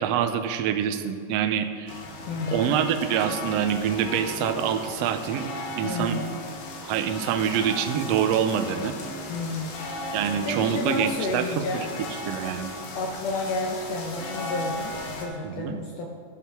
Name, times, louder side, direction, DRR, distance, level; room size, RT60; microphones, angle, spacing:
voice 1, 0.0-2.0 2.5-5.5 5.8-6.2 6.8-8.9 10.1-11.6 12.3-12.7 15.4-15.8, right 9 dB, 85° right, 7 dB, 1.5 m, -26 dB
sound 1, 1.9-15.2, left 1 dB, 85° left, 2.9 m, -36 dB
voice 2, 2.3-2.8 5.8-6.3 9.3-9.9 10.4-11.9 12.9-16.1, left 3 dB, 70° left, 1 dB, 1.7 m, -31 dB
13.0 x 5.8 x 5.9 m, 2.2 s
omnidirectional pair, 3.7 m